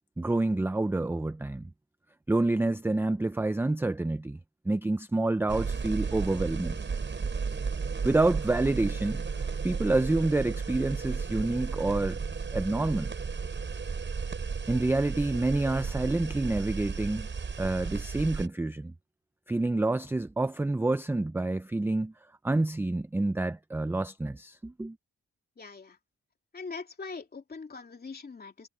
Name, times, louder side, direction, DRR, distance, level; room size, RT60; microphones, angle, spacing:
voice 1, 0.2-1.7 2.3-4.4 4.7-6.8 8.0-12.2 12.5-13.1 14.7-17.3 17.6-18.9 19.5-22.1 22.4-25.0, right 2 dB, 5° right, 0.4 m, -28 dB
sound 1, 5.5-18.5, right 5 dB, 35° right, 6.1 m, -34 dB
voice 2, 25.6-26.0 26.5-28.7, left 4 dB, 30° left, 3.0 m, -42 dB
wide cardioid pair, 145°, 31 cm